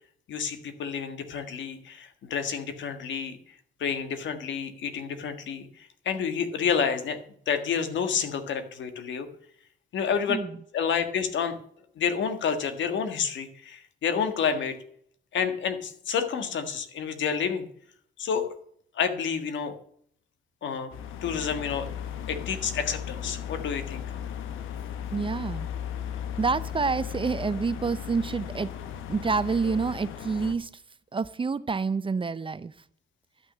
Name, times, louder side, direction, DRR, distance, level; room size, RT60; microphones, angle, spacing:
voice 1, 0.3-3.4 3.8-7.2 7.5-9.3 9.9-10.4 10.7-11.6 12.0-14.8 15.3-17.7 18.2-18.5 19.0-19.7 20.6-20.9 21.2-21.9 22.3-24.0, left 7 dB, 70° left, 8 dB, 1.7 m, -29 dB
voice 2, 10.3-10.6 25.1-25.7 26.4-28.7 29.1-30.7 31.1-32.7, right 4 dB, 25° right, 15 dB, 0.6 m, -28 dB
sound 1, 20.9-30.5, left 9 dB, 90° left, 1.1 m, -36 dB
12.0 x 6.3 x 8.2 m, 0.63 s
cardioid pair, 90°, 20 cm